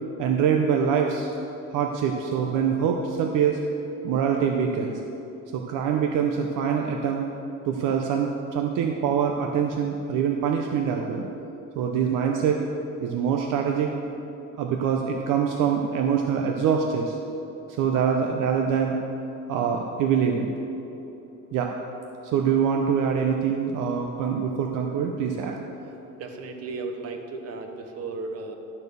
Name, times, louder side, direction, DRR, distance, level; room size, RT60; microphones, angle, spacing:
voice 1, 0.2-1.3 1.7-3.6 4.0-5.0 5.5-7.3 7.7-11.3 11.8-12.6 13.0-13.9 14.6-17.2 17.8-19.0 19.5-20.5 21.5-21.7 22.3-25.6, right 7 dB, 65° right, 2 dB, 0.7 m, -24 dB
voice 2, 26.2-28.5, right 3 dB, 45° right, 4 dB, 1.1 m, -35 dB
12.0 x 4.4 x 6.7 m, 3.0 s
cardioid pair, 125°, 33 cm